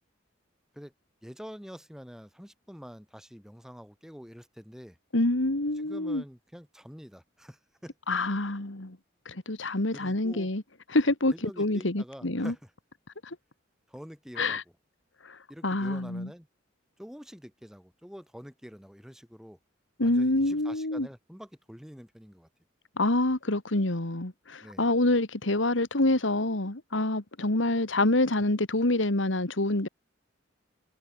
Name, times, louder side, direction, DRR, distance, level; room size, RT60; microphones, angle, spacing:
voice 1, 1.2-5.0 5.8-7.9 9.9-10.5 11.3-12.7 13.9-14.6 15.5-16.5 17.0-19.6 20.0-22.5 24.6-24.9, equal, 5° right, 4.4 m, -46 dB
voice 2, 5.1-6.2 8.1-9.0 9.3-10.6 10.9-12.5 13.2-13.4 14.4-14.6 15.2-16.3 20.0-21.1 23.0-29.9, left 2 dB, 75° left, 2.3 m, -27 dB
head